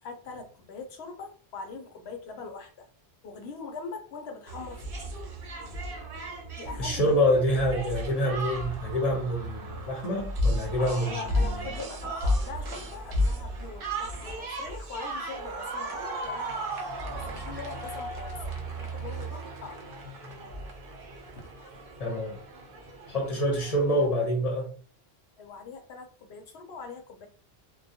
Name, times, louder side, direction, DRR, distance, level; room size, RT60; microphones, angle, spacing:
voice 1, 0.0-2.9 3.2-5.1 6.6-7.1 7.5-7.6 10.8-16.6 17.1-18.4 18.7-19.8 21.4-21.5 25.4-27.3, left 4 dB, 80° left, 0.9 m, -42 dB
sound 1, 4.5-24.1, equal, 65° right, 0.7 m, -34 dB
voice 2, 6.8-11.5 22.0-22.4 23.1-24.7, equal, 40° left, 0.7 m, -26 dB
2.3 x 2.0 x 2.7 m
omnidirectional pair, 1.1 m